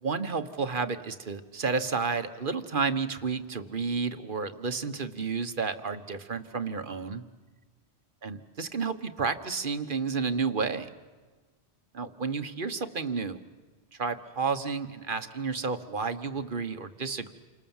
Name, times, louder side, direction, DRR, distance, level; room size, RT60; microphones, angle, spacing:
voice 1, 0.0-7.2 8.2-10.9 11.9-13.4 14.0-17.3, right 5 dB, 50° right, 10 dB, 1.4 m, -31 dB
29.5 x 26.0 x 7.3 m, 1.3 s
omnidirectional pair, 1.1 m